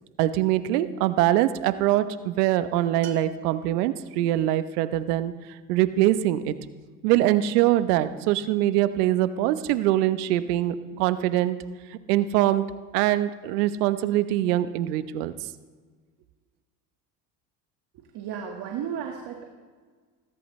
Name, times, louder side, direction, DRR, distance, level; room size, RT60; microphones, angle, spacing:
voice 1, 0.2-5.3 5.7-6.5 7.0-11.6 12.1-15.3, right 13 dB, 75° right, 13 dB, 1.0 m, -23 dB
Bell, 3.0-4.4, right 1 dB, 35° right, 2.1 m, -43 dB
voice 2, 18.1-19.5, right 8 dB, 55° right, 2 dB, 1.9 m, -33 dB
19.5 x 18.0 x 3.2 m, 1.5 s
hypercardioid pair, 75°, 46 cm